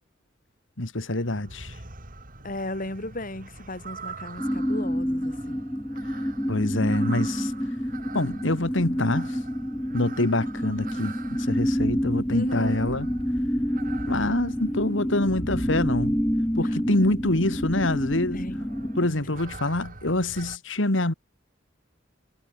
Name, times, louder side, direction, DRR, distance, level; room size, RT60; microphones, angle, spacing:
voice 1, 0.8-1.7 6.5-7.5 8.1-9.4 9.9-13.1 14.1-16.2 16.6-18.5 19.0-21.1, left 1 dB, 75° left, 2.4 m, -26 dB
sound 1, 1.2-20.6, right 2 dB, 45° right, 4.5 m, -42 dB
voice 2, 2.4-5.6 12.3-13.0 16.6-16.8 18.3-18.7, left 1 dB, 45° left, 7.7 m, -35 dB
sound 2, 4.4-19.1, equal, 10° left, 1.9 m, -28 dB
head